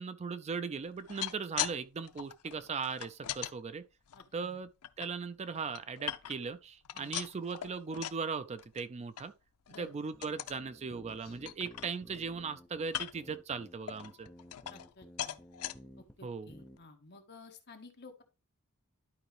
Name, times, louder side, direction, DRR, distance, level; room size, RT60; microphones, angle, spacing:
voice 1, 0.0-3.8 4.3-4.7 5.0-9.3 9.8-14.3 16.2-16.5, right 5 dB, 30° right, 0.4 m, -38 dB
sound 1, 0.9-1.8 2.0-3.5 4.1-5.1 5.5-6.5 6.8-8.3 8.6-8.9 9.2-9.3 9.7-9.9 10.2-10.6 11.1-11.2 11.5-12.3 12.9-13.3 13.9-14.9 15.2-15.8 16.4-16.5 16.8-16.9, left 12 dB, 85° left, 0.5 m, -40 dB
voice 2, 4.1-4.6 6.9-7.2 9.7-9.9 14.7-15.4 16.2-18.2, left 3 dB, 50° left, 1.5 m, -54 dB
sound 2, 9.1-9.4 9.7-10.3 11.2-11.4, left 5 dB, 65° left, 1.5 m, -63 dB
sound 3, 10.1-16.2 16.5-16.8, equal, 5° left, 0.7 m, -55 dB
11.5 x 4.7 x 3.3 m
head